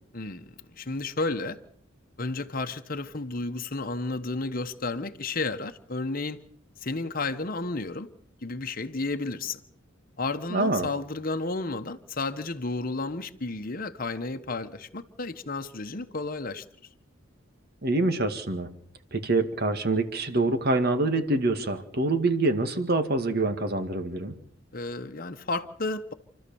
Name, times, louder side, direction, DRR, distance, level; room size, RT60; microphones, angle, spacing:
voice 1, 0.1-1.6 2.2-6.4 6.8-8.1 8.4-9.6 10.2-16.6 24.7-26.1, left 3 dB, 45° left, 1.1 m, -32 dB
voice 2, 10.5-10.9 17.8-18.7 19.1-24.3, right 2 dB, 50° right, 1.9 m, -25 dB
28.5 x 13.0 x 7.1 m
head